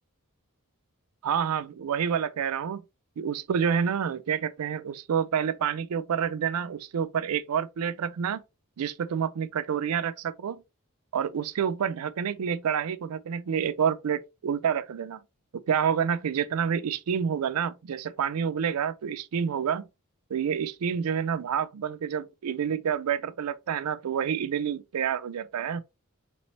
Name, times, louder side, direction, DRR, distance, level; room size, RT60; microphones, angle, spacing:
voice 1, 1.2-2.8 3.2-8.4 8.8-10.6 11.1-15.2 15.7-19.9 20.3-25.8, right 7 dB, 90° right, 0.4 m, -28 dB
4.1 x 3.0 x 2.9 m
head